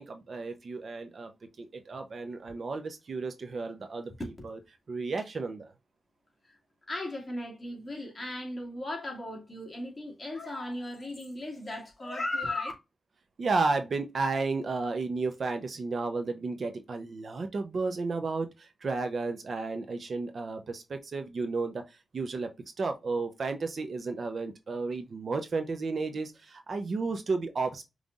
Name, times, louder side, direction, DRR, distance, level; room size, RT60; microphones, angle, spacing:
voice 1, 0.0-4.1 4.4-4.6 4.9-5.6 13.4-22.5 22.8-27.8, right 3 dB, 55° right, 0.8 m, -33 dB
voice 2, 6.9-12.7, left 1 dB, 25° left, 2.2 m, -36 dB
5.4 x 3.2 x 2.5 m
wide cardioid pair, 120°, 0 cm